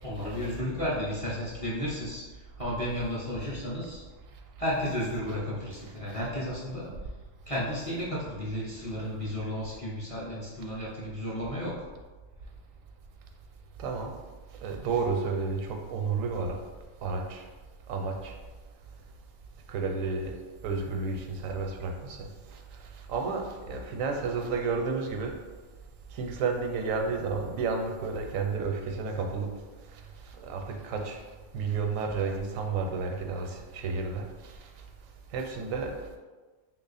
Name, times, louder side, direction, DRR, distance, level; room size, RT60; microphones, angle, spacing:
voice 1, 0.0-4.0 4.6-6.9 7.5-11.8, equal, 35° left, -7 dB, 0.6 m, -33 dB
voice 2, 13.8-14.1 14.6-16.6 17.0-17.4 17.9-18.3 19.7-20.4 20.6-22.3 23.1-25.3 26.1-29.5 30.4-31.2 31.5-34.2 35.3-36.2, right 4 dB, 85° right, 3 dB, 1.0 m, -31 dB
2.9 x 2.4 x 4.0 m, 1.3 s
omnidirectional pair, 1.3 m